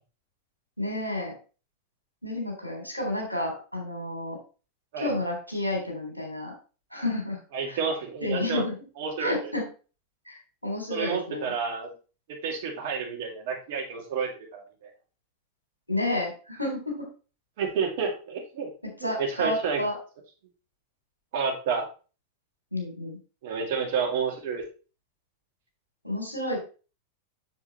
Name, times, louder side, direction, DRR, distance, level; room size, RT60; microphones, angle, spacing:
voice 1, 0.8-1.4 2.2-4.4 5.0-6.5 6.9-7.4 7.7-7.8 8.2-8.8 9.2-9.6 10.3-11.5 15.9-16.9 18.8-19.9 22.7-23.2 26.0-26.6, left 1 dB, 85° left, 1 dB, 3.6 m, -30 dB
voice 2, 7.5-8.6 9.0-9.5 10.9-11.9 12.3-14.6 17.6-18.7 19.0-19.8 21.3-21.9 23.4-24.6, right 5 dB, 50° right, 1 dB, 2.3 m, -30 dB
7.5 x 7.1 x 3.2 m, 0.35 s
figure-of-eight pair, 90°, 0 cm